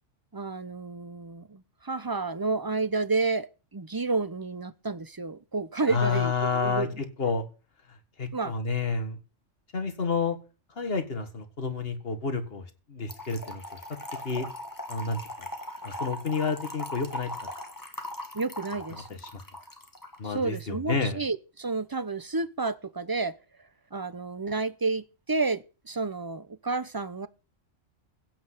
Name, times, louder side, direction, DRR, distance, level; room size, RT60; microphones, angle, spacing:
voice 1, 0.3-6.9 8.3-8.5 18.3-19.2 20.2-23.4 23.9-27.3, right 3 dB, 30° right, 0.4 m, -30 dB
voice 2, 5.9-7.5 7.9-9.2 9.7-10.4 10.8-13.6 13.9-14.0 14.2-14.5 14.9-15.5 15.8-17.3 18.9-19.4 20.2-21.2, left 5 dB, 50° left, 1.9 m, -30 dB
Trickle dribble / Fill (with liquid), 13.1-20.2, left 1 dB, 15° left, 1.9 m, -39 dB
15.5 x 6.0 x 8.2 m
omnidirectional pair, 1.3 m